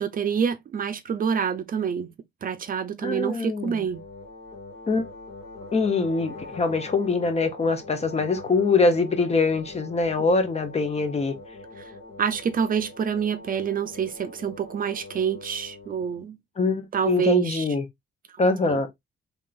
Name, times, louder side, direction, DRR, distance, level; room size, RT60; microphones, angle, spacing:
voice 1, 0.0-2.1 2.4-4.0 12.2-16.4 16.9-17.6, right 7 dB, 45° right, 0.5 m, -27 dB
voice 2, 3.0-3.8 4.9-5.0 5.7-11.3 16.6-17.8 18.4-18.9, left 3 dB, 35° left, 1.0 m, -23 dB
sound 1, 3.9-16.1, left 2 dB, 55° left, 2.2 m, -43 dB
3.7 x 3.5 x 2.5 m
cardioid pair, 90°, 20 cm